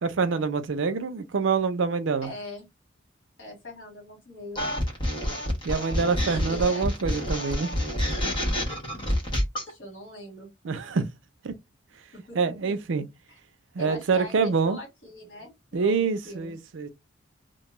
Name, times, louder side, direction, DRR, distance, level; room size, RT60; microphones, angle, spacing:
voice 1, 0.0-2.3 5.6-7.7 10.6-11.0 11.4-11.5 12.3-13.0 13.7-14.8 15.7-16.9, right 5 dB, 75° right, 0.5 m, -26 dB
voice 2, 2.2-2.7 3.4-4.6 6.3-6.9 9.7-10.5 12.1-12.8 13.3-13.4 13.8-16.6, left 1 dB, 70° left, 1.6 m, -41 dB
sound 1, 4.6-9.7, equal, 25° left, 0.9 m, -28 dB
2.5 x 2.3 x 2.9 m
head